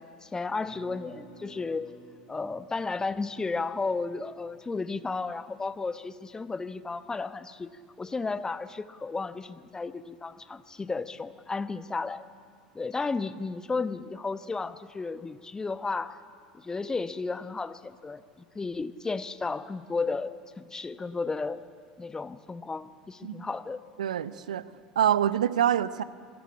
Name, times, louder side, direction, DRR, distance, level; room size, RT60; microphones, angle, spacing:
voice 1, 0.0-1.9 2.3-7.7 8.0-12.2 12.7-16.2 16.5-18.2 18.5-20.3 20.6-21.6 22.0-23.8, left 4 dB, 15° left, 13 dB, 1.0 m, -33 dB
sound 1, 0.7-6.6, equal, 45° left, 4.9 m, -54 dB
voice 2, 24.0-24.6 25.0-26.0, right 10 dB, 70° right, 17 dB, 0.7 m, -25 dB
26.0 x 19.5 x 8.8 m, 2.1 s
figure-of-eight pair, 75°, 4 cm